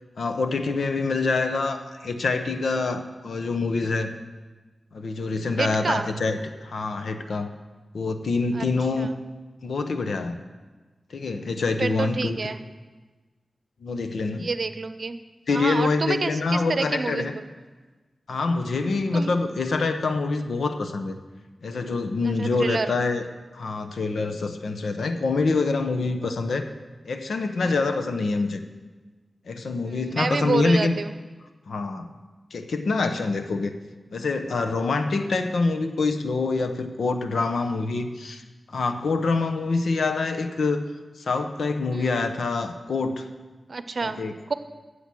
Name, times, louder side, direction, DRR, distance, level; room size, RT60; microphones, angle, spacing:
voice 1, 0.2-4.1 4.9-7.5 7.9-9.1 9.6-10.4 11.1-12.5 13.8-14.5 15.5-17.4 18.3-21.2 21.6-23.3 23.5-26.7 27.0-28.6 29.5-31.0 31.7-32.1 32.5-33.7 34.1-38.4 38.7-40.8 41.2-43.3 44.0-44.3, left 3 dB, 85° left, 8 dB, 0.9 m, -26 dB
voice 2, 5.6-6.1 8.5-8.7 9.0-9.1 11.8-12.6 14.4-15.2 15.5-17.3 19.1-19.3 22.2-22.9 27.6-27.8 29.8-31.1 41.9-42.2 43.7-44.2 44.5-44.6, right 4 dB, 65° right, 11 dB, 0.7 m, -28 dB
14.0 x 7.9 x 6.2 m, 1.3 s
cardioid pair, 50°, 0 cm